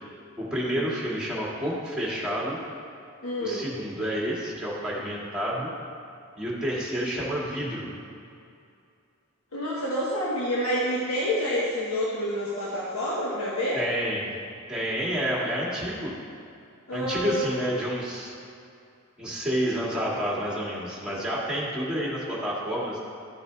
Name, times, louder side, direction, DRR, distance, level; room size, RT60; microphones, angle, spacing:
voice 1, 0.4-2.6 3.4-5.7 6.4-7.9 13.7-14.3 14.7-16.1 16.9-18.3 19.2-23.1, equal, 5° right, -6 dB, 1.8 m, -29 dB
voice 2, 3.2-3.7 9.5-13.8 16.9-17.4, equal, 90° left, -6 dB, 1.4 m, -28 dB
12.5 x 6.8 x 3.3 m, 2.5 s
head